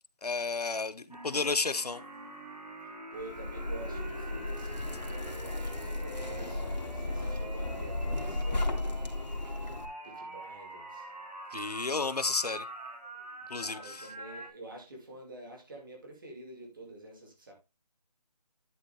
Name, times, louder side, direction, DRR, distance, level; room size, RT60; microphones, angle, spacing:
voice 1, 0.2-2.0 11.5-12.7 13.5-14.1, left 4 dB, 70° left, 0.9 m, -32 dB
sound 1, 1.1-14.5, right 2 dB, 70° right, 3.6 m, -45 dB
voice 2, 3.1-9.1 10.0-11.1 13.6-17.5, right 2 dB, 30° right, 2.7 m, -48 dB
Zipper (clothing), 3.2-9.9, left 2 dB, 85° left, 2.5 m, -35 dB
11.0 x 6.2 x 3.5 m
figure-of-eight pair, 175°, 21 cm